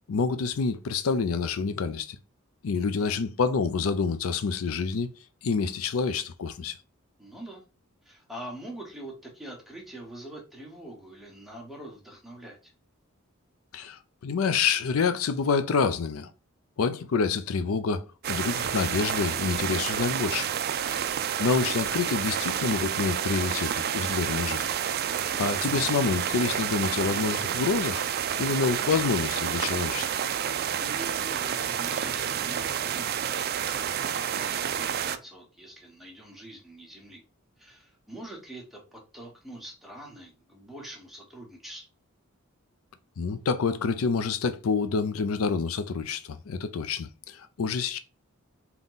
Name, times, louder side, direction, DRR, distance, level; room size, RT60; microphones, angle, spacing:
voice 1, 0.1-2.2 2.6-5.1 5.4-6.8 13.7-16.3 16.8-20.5 21.4-24.6 25.4-28.0 28.4-30.1 43.2-48.0, left 5 dB, 85° left, 0.5 m, -27 dB
voice 2, 2.8-3.3 7.2-7.6 8.0-12.7 30.6-33.5 33.9-37.2 37.6-41.9, right 1 dB, ahead, 1.2 m, -44 dB
sound 1, 18.2-35.2, right 9 dB, 50° right, 0.3 m, -29 dB
3.7 x 2.9 x 3.9 m
head